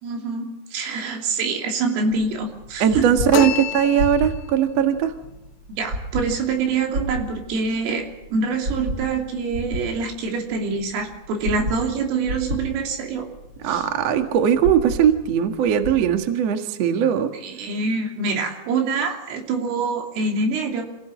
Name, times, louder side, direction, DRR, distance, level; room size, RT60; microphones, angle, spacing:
voice 1, 0.0-3.1 3.4-3.5 5.8-13.3 13.7-13.8 17.4-20.8, right 4 dB, 90° right, 3 dB, 5.5 m, -25 dB
sound 1, 2.1-16.1, right 1 dB, 25° right, 7.3 m, -33 dB
voice 2, 2.8-5.1 13.6-17.3, right 9 dB, 65° right, 6 dB, 1.6 m, -19 dB
sound 2, 3.3-4.6, left 13 dB, 85° left, 3.5 m, -28 dB
26.5 x 16.5 x 7.7 m, 0.90 s
omnidirectional pair, 5.7 m